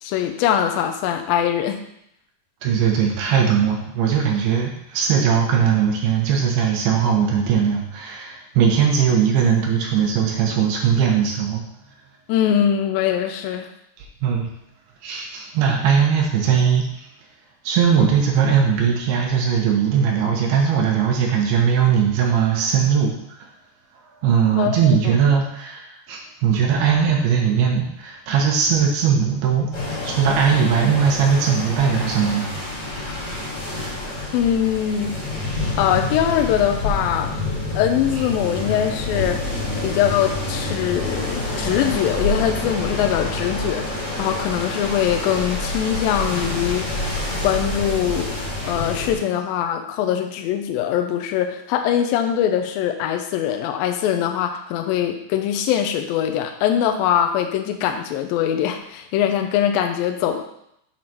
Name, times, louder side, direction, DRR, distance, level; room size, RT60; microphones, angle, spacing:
voice 1, 0.0-1.8 12.3-13.7 24.5-25.2 34.3-35.1 35.8-37.3 37.7-39.4 39.8-43.8 44.2-47.0 47.4-48.4 48.6-60.4, left 10 dB, 80° left, 5 dB, 2.3 m, -22 dB
voice 2, 2.6-11.6 14.2-14.5 15.0-16.9 17.6-23.1 24.2-29.7 30.0-32.5 38.1-38.3, right 7 dB, 80° right, 0 dB, 2.9 m, -19 dB
sound 1, 29.7-49.2, left 2 dB, 40° left, 3.1 m, -27 dB
7.6 x 4.0 x 6.0 m, 0.75 s
omnidirectional pair, 4.5 m